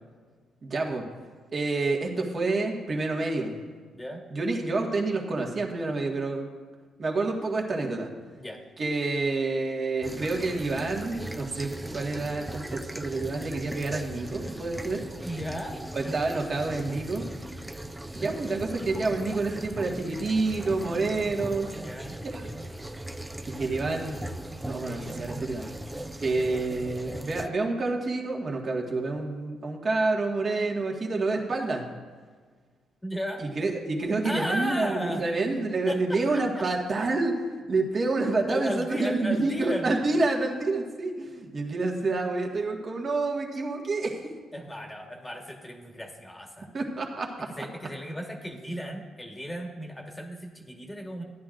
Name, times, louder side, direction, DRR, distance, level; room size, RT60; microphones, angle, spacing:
voice 1, 0.6-1.1 1.5-3.5 4.3-6.5 7.0-8.1 8.8-15.0 15.9-17.3 18.1-21.7 22.2-22.5 23.5-24.2 24.6-25.7 26.2-31.8 33.4-37.4 37.7-44.2 46.7-47.5, right 3 dB, 40° right, 1 dB, 1.6 m, -28 dB
sound 1, 10.0-27.5, right 1 dB, 10° right, 0.5 m, -38 dB
voice 2, 15.2-15.8 21.7-22.2 33.0-33.4 34.2-35.2 35.9-36.7 38.5-39.9 44.5-46.7 47.6-51.2, equal, 10° left, 3 dB, 1.4 m, -35 dB
14.0 x 10.5 x 2.5 m, 1.5 s
cardioid pair, 90°, 0 cm